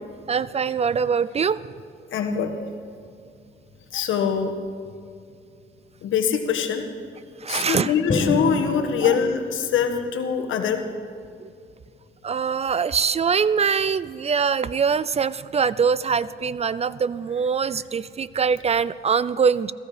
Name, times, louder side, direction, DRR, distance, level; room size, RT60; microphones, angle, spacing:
voice 1, 0.3-1.6 7.4-7.9 9.0-9.2 11.4-11.5 12.2-19.7, right 6 dB, 30° right, 18 dB, 0.4 m, -23 dB
voice 2, 2.1-2.5 3.9-4.5 6.0-6.9 7.5-10.8, left 7 dB, 80° left, 5 dB, 1.5 m, -23 dB
Drum, 8.1-10.2, left 1 dB, 40° left, 4.8 m, -28 dB
16.5 x 14.5 x 5.1 m, 2.4 s
cardioid pair, 90°, 20 cm